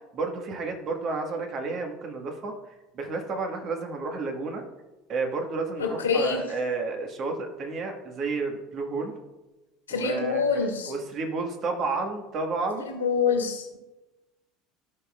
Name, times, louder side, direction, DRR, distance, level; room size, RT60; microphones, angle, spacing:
voice 1, 0.1-2.5 2.9-4.6 5.1-9.1 9.9-12.9, right 3 dB, 45° right, 3 dB, 1.6 m, -31 dB
voice 2, 5.8-6.4 9.9-10.9 12.8-13.7, left 6 dB, 85° left, -1 dB, 2.1 m, -26 dB
16.0 x 5.5 x 2.4 m, 1.1 s
hypercardioid pair, 70°, 0 cm